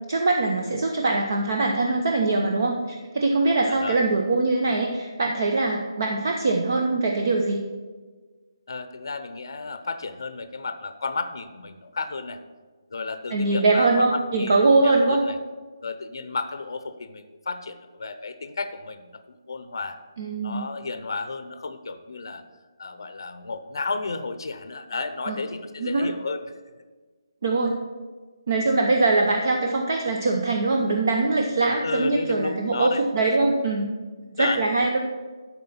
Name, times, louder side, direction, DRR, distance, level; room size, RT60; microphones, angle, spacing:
voice 1, 0.1-7.6 13.3-15.2 20.2-20.6 25.3-25.4 25.8-26.1 27.4-27.8 28.5-33.9 34.3-35.0, right 3 dB, 40° right, 2 dB, 0.7 m, -22 dB
voice 2, 3.7-4.0 8.7-12.4 12.9-14.5 14.8-15.4 15.8-20.0 20.4-22.4 22.8-26.5 31.8-33.0 34.4-34.7, left 4 dB, 60° left, 10 dB, 0.6 m, -32 dB
12.0 x 4.3 x 5.7 m, 1.4 s
hypercardioid pair, 180°, 3 cm